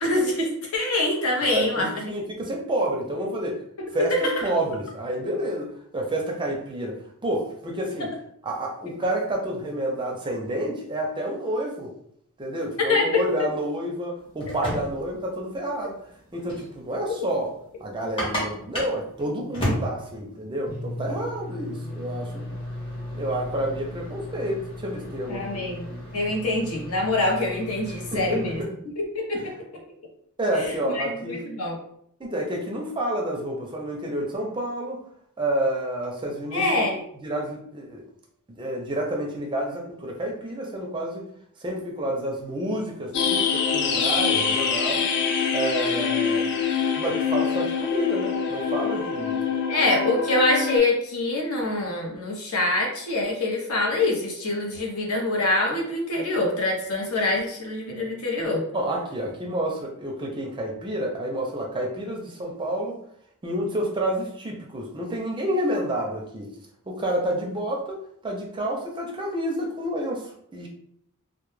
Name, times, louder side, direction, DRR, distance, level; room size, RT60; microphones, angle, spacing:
voice 1, 0.0-1.9 3.8-4.3 12.9-13.1 25.3-28.6 29.0-29.5 30.5-31.8 36.5-37.0 49.7-58.6, left 2 dB, 75° left, 0 dB, 0.7 m, -25 dB
voice 2, 1.5-3.6 3.9-8.1 8.4-11.9 12.4-16.0 16.3-17.5 17.8-22.5 23.1-26.0 28.1-28.7 29.3-29.5 30.4-31.4 32.2-35.0 35.4-36.8 37.2-38.0 38.5-41.3 41.6-45.1 45.5-46.6 47.0-49.4 58.7-63.0 63.4-66.5 66.9-70.7, right 1 dB, 20° right, 0 dB, 0.4 m, -29 dB
sound 1, 14.2-28.6, left 1 dB, 25° left, 0.8 m, -34 dB
sound 2, 43.1-50.8, left 6 dB, 55° left, 0.3 m, -25 dB
2.1 x 2.0 x 3.1 m, 0.69 s
head